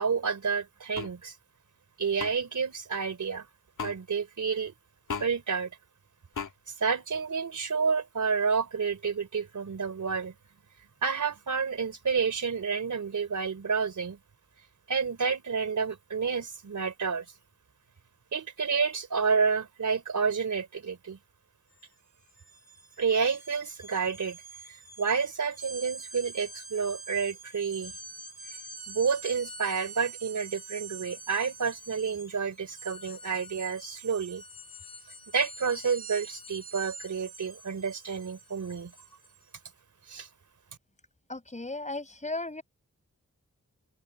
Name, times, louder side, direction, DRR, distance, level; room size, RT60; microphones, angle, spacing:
voice 1, 0.0-1.3 2.0-3.5 3.8-4.7 5.2-5.7 6.8-10.3 11.0-14.2 14.9-17.3 18.3-21.2 23.0-24.4 24.7-27.9 28.9-34.4 35.3-38.9 40.1-40.3, right 5 dB, 75° right, 3.7 m, -29 dB
sound 1, 0.9-1.1 2.2-2.3 3.8-4.0 5.1-5.3 6.3-6.5, left 6 dB, 85° left, 2.2 m, -34 dB
sound 2, 21.7-21.9 22.2-39.4, right 3 dB, 30° right, 5.9 m, -46 dB
voice 2, 41.3-42.6, left 2 dB, 25° left, 5.3 m, -35 dB
open air
wide cardioid pair, 90°, 30 cm